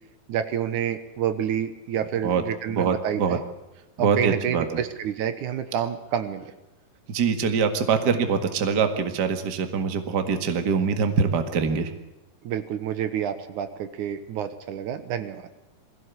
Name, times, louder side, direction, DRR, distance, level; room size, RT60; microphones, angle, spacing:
voice 1, 0.3-3.4 4.0-6.4 12.4-15.4, right 9 dB, 75° right, 10 dB, 2.5 m, -28 dB
voice 2, 2.7-3.4 4.0-4.7 7.1-11.9, right 6 dB, 40° right, 7 dB, 1.9 m, -24 dB
22.5 x 16.0 x 8.2 m, 1.0 s
omnidirectional pair, 3.7 m